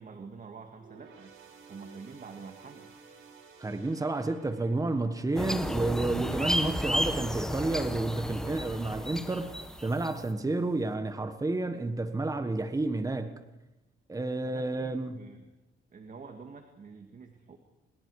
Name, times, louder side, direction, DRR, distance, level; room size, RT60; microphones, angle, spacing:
voice 1, 0.0-1.4 1.7-2.9 14.5-15.5 15.9-17.6, right 5 dB, 45° right, 2.1 m, -47 dB
sound 1, 0.8-8.4 8.9-9.0 9.9-10.0, right 5 dB, 80° right, 4.8 m, -54 dB
voice 2, 3.6-13.4 14.1-15.3, right 2 dB, 15° right, 1.5 m, -30 dB
sound 2, 5.4-10.2, equal, 5° left, 1.5 m, -33 dB
26.5 x 21.5 x 4.9 m
cardioid pair, 90°, 20 cm